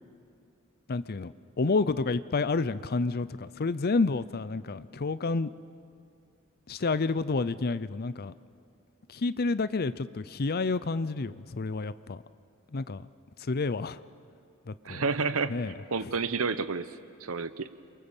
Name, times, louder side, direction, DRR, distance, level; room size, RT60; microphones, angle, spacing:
voice 1, 0.9-5.5 6.7-8.3 9.1-12.2 12.7-13.1 13.4-14.0 14.7-15.0 15.5-15.7 16.0-16.1, left 3 dB, 45° left, 15 dB, 0.6 m, -29 dB
voice 2, 14.8-15.6 15.9-16.9 17.2-17.7, right 4 dB, 70° right, 13 dB, 0.9 m, -30 dB
28.5 x 23.5 x 7.2 m, 2.5 s
head